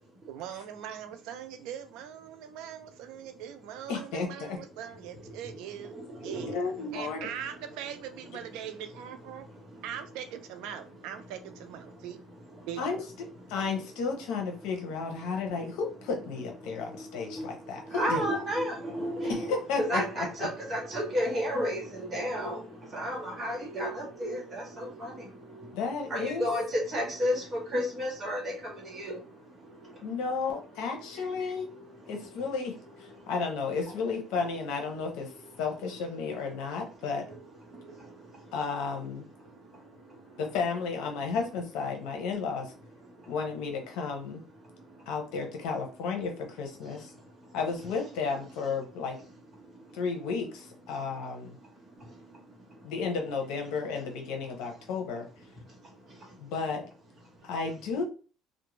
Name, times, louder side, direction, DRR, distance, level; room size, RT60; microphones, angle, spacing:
voice 1, 0.3-6.5 6.9-9.4 9.8-12.2 12.6-13.1, right 9 dB, 80° right, 0.4 m, -41 dB
voice 2, 3.9-4.6 6.5-7.3 12.8-13.0 13.5-18.4 19.2-20.5 25.7-26.5 30.0-31.7 32.1-35.3 35.6-37.3 38.5-39.2 40.4-42.7 43.3-44.4 45.1-47.1 47.5-49.2 49.9-51.6 52.8-55.3 56.4-56.8 57.4-58.0, left 5 dB, 85° left, 0.7 m, -33 dB
voice 3, 5.9-7.2 9.7-9.9 11.9-12.7 15.2-15.6 16.6-30.2 31.1-32.4 33.1-33.3 37.3-37.4 37.7-38.5 39.4-40.4 43.1-43.4 44.6-45.1 46.8-47.6 49.6-50.0 50.9-51.0 51.5-52.9 55.6-56.4 57.3-57.5, equal, 25° right, 1.0 m, -35 dB
2.5 x 2.1 x 3.0 m
cardioid pair, 160°, 0 cm